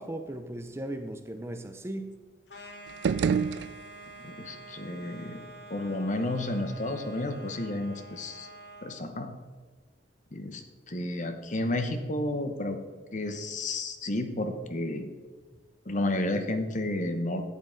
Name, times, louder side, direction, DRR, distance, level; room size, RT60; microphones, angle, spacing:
voice 1, 0.0-2.1, right 1 dB, 15° right, 8 dB, 0.5 m, -37 dB
sound 1, 2.5-9.0, right 2 dB, 70° left, 1.4 m, -47 dB
sound 2, 2.9-4.3, right 6 dB, 70° right, 0.3 m, -29 dB
voice 2, 4.2-5.4 5.7-8.5 8.8-9.3 10.3-10.6 10.9-12.8 13.1-15.1 15.9-17.4, left 1 dB, 45° left, 7 dB, 0.9 m, -31 dB
13.0 x 8.4 x 3.9 m, 1.3 s
head